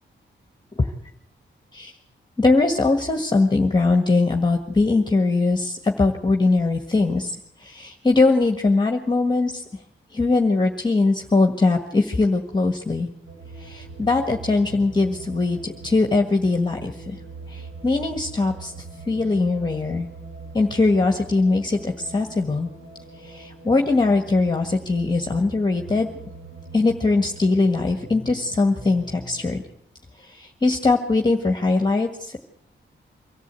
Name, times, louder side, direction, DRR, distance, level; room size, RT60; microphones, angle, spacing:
voice 1, 2.4-9.6 10.1-13.1 13.6-17.2 17.5-18.7 19.1-20.1 20.5-22.7 23.2-26.1 26.7-29.6 30.2-32.4, left 3 dB, 20° left, 4 dB, 1.6 m, -21 dB
sound 1, 13.2-29.4, right 3 dB, 90° right, 5.0 m, -41 dB
24.0 x 14.0 x 8.3 m, 0.77 s
cardioid pair, 90°, 20 cm